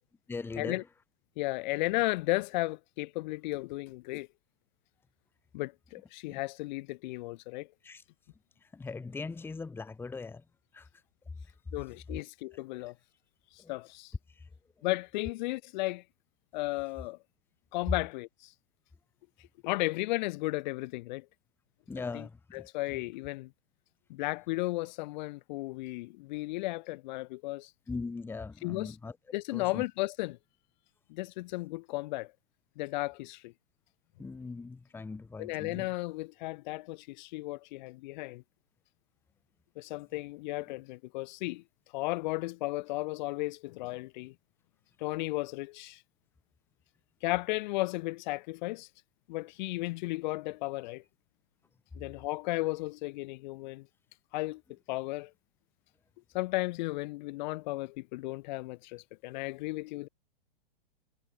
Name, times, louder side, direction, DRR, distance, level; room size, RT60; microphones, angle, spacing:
voice 1, 0.3-0.8 6.3-6.4 7.8-8.0 8.6-10.4 10.7-10.9 13.6-13.7 14.3-14.5 21.9-22.7 27.9-29.2 29.5-29.8 34.2-35.9, left 4 dB, 5° left, 1.1 m, -40 dB
voice 2, 1.4-4.3 5.5-7.7 11.7-12.9 13.5-14.1 14.8-16.0 16.5-17.2 17.7-18.5 19.6-21.3 22.1-22.3 22.5-23.5 24.1-27.7 28.6-29.0 29.3-30.4 31.1-32.3 32.8-33.5 34.2-34.3 35.4-38.4 39.8-41.6 41.9-44.3 45.0-46.0 47.2-48.9 49.3-51.0 51.9-53.9 54.3-55.3 56.3-60.1, left 21 dB, 50° left, 1.5 m, -34 dB
hypercardioid pair, 125°, 29 cm